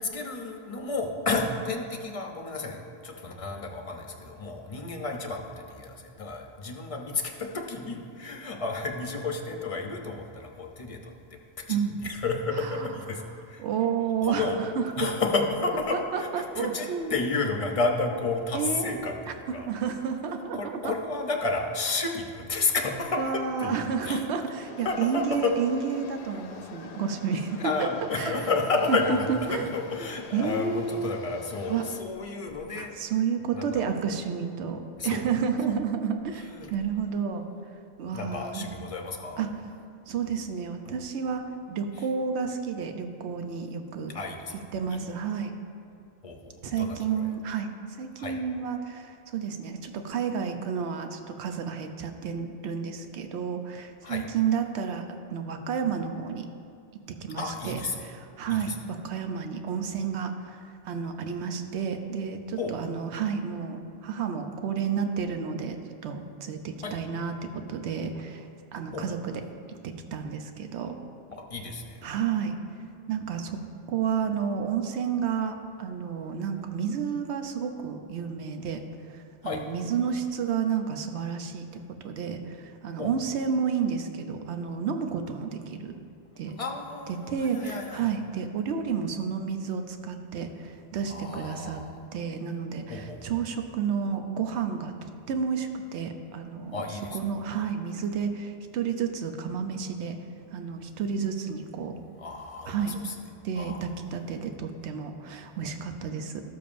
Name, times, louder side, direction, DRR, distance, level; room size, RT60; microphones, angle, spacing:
voice 1, 0.0-11.1 11.7-13.2 13.5-13.6 14.2-14.6 15.0-19.7 20.5-24.3 24.8-25.5 26.3-26.4 27.6-32.9 33.5-33.9 35.0-35.3 35.7-35.8 36.3-36.7 38.1-39.4 42.0-42.1 44.1-44.5 44.9-45.0 46.2-47.3 48.2-48.4 54.0-54.2 57.4-58.1 58.5-58.8 62.6-62.7 66.8-67.0 68.9-69.2 71.5-71.9 79.4-79.6 83.0-83.1 86.6-88.1 91.1-92.0 92.9-93.4 96.7-97.2 102.2-103.1 103.5-103.9, left 3 dB, 35° left, 2 dB, 0.7 m, -31 dB
voice 2, 12.6-12.9 13.6-14.5 14.8-15.1 15.9-17.1 18.5-19.2 19.5-20.9 23.2-28.4 28.9-29.7 30.0-31.2 31.7-31.8 32.8-37.5 38.0-38.7 39.4-39.5 40.1-44.1 44.5-45.5 46.6-47.7 48.0-56.5 57.2-69.4 69.8-71.0 72.0-72.6 73.1-73.6 73.9-78.8 79.1-81.7 82.0-85.9 86.4-86.6 87.1-91.8 92.1-96.8 97.1-100.2 100.5-101.9 102.7-103.1 103.4-106.4, right 6 dB, 80° right, 6 dB, 0.9 m, -31 dB
sound 1, 24.6-32.0, left 5 dB, 75° left, 0.9 m, -46 dB
13.0 x 7.0 x 2.5 m, 2.4 s
omnidirectional pair, 1.1 m